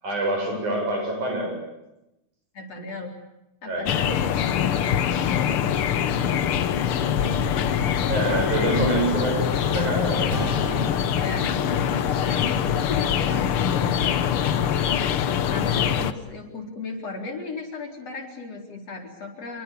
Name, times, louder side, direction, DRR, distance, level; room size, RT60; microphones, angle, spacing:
voice 1, 0.0-1.6 3.7-3.9 8.1-10.4, right 2 dB, 55° right, 4 dB, 8.8 m, -26 dB
voice 2, 2.5-3.2 3.6-5.6 7.1-8.0 11.2-11.6 12.0-14.2 15.5-19.6, left 3 dB, 45° left, 3 dB, 5.2 m, -36 dB
sound 1, 3.9-16.1, left 9 dB, 70° left, 1.3 m, -23 dB
sound 2, 10.3-14.3, right 2 dB, 25° right, 5.1 m, -38 dB
29.0 x 23.0 x 8.6 m, 0.91 s
omnidirectional pair, 4.2 m